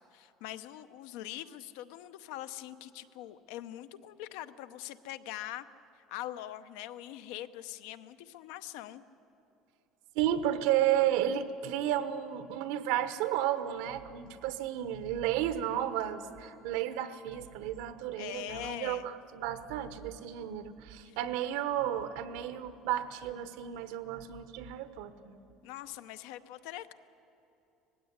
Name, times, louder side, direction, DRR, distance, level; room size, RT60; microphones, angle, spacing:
voice 1, 0.0-5.7 6.0-9.0 18.2-19.1 21.1-21.2 25.6-26.9, left 13 dB, 80° left, 12 dB, 0.8 m, -43 dB
voice 2, 10.1-25.3, right 11 dB, 80° right, 11 dB, 1.1 m, -32 dB
19.0 x 16.0 x 9.6 m, 2.9 s
cardioid pair, 180°, 0 cm